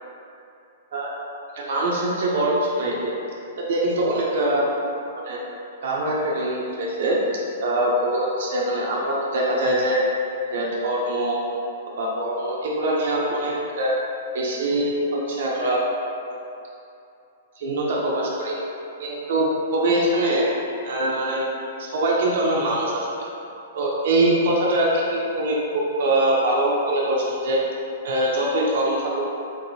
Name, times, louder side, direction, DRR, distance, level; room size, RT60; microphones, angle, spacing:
voice 1, 1.5-3.1 3.6-4.6 5.2-5.4 5.8-10.0 10.5-11.4 12.0-13.9 14.3-15.8 17.6-18.6 19.0-20.5 20.8-21.5 21.8-23.1 23.7-27.6 28.0-29.2, right 1 dB, 65° right, -4 dB, 0.6 m, -23 dB
3.9 x 2.7 x 2.7 m, 2.7 s
hypercardioid pair, 125°, 0 cm